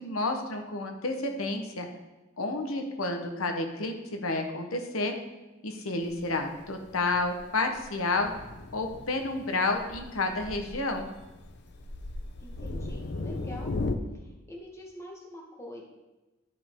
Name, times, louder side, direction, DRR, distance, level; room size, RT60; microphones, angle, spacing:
voice 1, 0.0-1.9 2.4-5.1 5.6-8.3 8.7-11.1, left 2 dB, 90° left, 4 dB, 1.1 m, -30 dB
Thunder, 6.0-14.0, left 2 dB, 55° left, 0.6 m, -38 dB
voice 2, 12.4-13.7 14.1-15.8, left 1 dB, 15° left, -2 dB, 1.4 m, -45 dB
12.0 x 5.1 x 3.6 m, 1.1 s
head